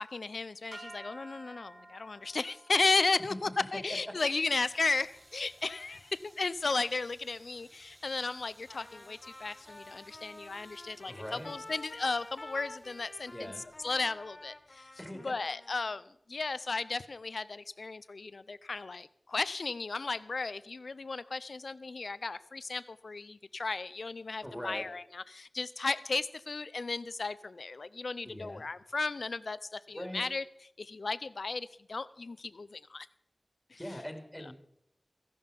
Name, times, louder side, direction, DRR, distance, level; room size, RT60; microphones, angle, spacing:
voice 1, 0.0-13.5 13.8-14.9 15.2-30.4 30.8-33.1 33.7-33.8, left 3 dB, 90° left, 17 dB, 0.5 m, -34 dB
sound 1, 0.7-7.1, right 1 dB, 55° right, 2.4 m, -54 dB
voice 2, 3.2-4.1 11.0-11.5 13.3-13.6 15.0-15.3 24.4-24.9 28.2-28.7 29.9-30.3 33.7-34.5, equal, 5° left, 4 dB, 2.6 m, -42 dB
sound 2, 4.1-15.2, right 1 dB, 85° right, 5.2 m, -61 dB
Trumpet, 8.7-16.0, left 2 dB, 45° left, 1.7 m, -50 dB
14.5 x 11.0 x 5.2 m, 0.73 s
wide cardioid pair, 65°, 0 cm